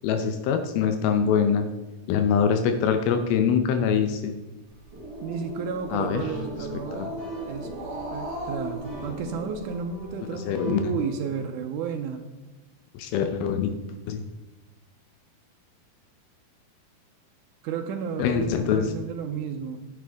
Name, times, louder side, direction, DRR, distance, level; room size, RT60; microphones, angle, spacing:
voice 1, 0.0-1.7 2.1-4.3 5.9-6.2 7.0-7.1 10.5-10.8 12.9-13.7 14.1-14.2 18.2-18.9, left 7 dB, 85° left, 7 dB, 2.6 m, -23 dB
Growling, 4.7-10.0, right 1 dB, 45° right, 1.3 m, -36 dB
voice 2, 5.2-7.1 7.5-7.7 8.1-12.3 17.6-19.9, right 6 dB, 90° right, 5 dB, 1.8 m, -32 dB
sound 1, 6.2-11.5, right 1 dB, 15° left, 1.8 m, -44 dB
10.0 x 8.0 x 3.5 m, 1.1 s
omnidirectional pair, 4.3 m